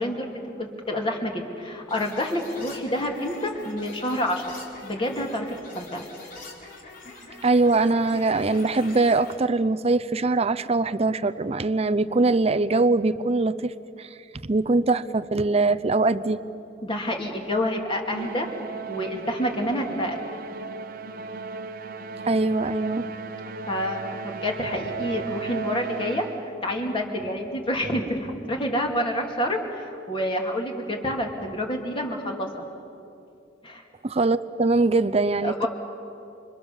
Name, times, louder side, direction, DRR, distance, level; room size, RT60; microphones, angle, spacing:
voice 1, 0.0-4.4 4.8-5.5 5.7-6.1 16.8-18.5 18.9-20.3 23.7-26.2 26.6-32.5 33.6-33.8 35.4-35.7, left 1 dB, 30° left, 1 dB, 2.9 m, -28 dB
sound 1, 1.9-9.3, left 2 dB, 50° left, 4.5 m, -43 dB
voice 2, 7.4-13.7 14.0-14.1 14.4-16.4 22.3-23.1 34.0-35.6, right 3 dB, 35° right, 12 dB, 0.6 m, -22 dB
Musical instrument, 18.1-26.6, right 5 dB, 50° right, 1.0 m, -36 dB
29.0 x 25.5 x 7.1 m, 2.6 s
head